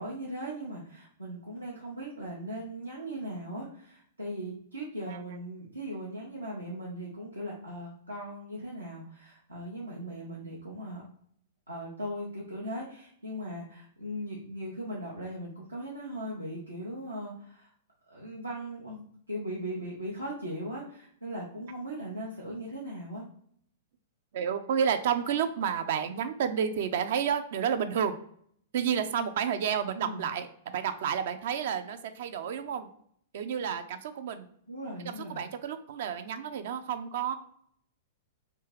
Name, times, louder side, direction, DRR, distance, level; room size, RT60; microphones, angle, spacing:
voice 1, 0.0-11.0 11.7-17.7 18.1-23.2 29.9-30.3 34.7-35.4, right 1 dB, 90° right, -6 dB, 0.8 m, -39 dB
voice 2, 24.3-28.2 28.7-30.5 30.7-32.9 33.3-34.5 35.0-37.3, right 8 dB, 55° right, 10 dB, 0.4 m, -30 dB
3.3 x 2.9 x 3.1 m, 0.64 s
figure-of-eight pair, 105°, 0 cm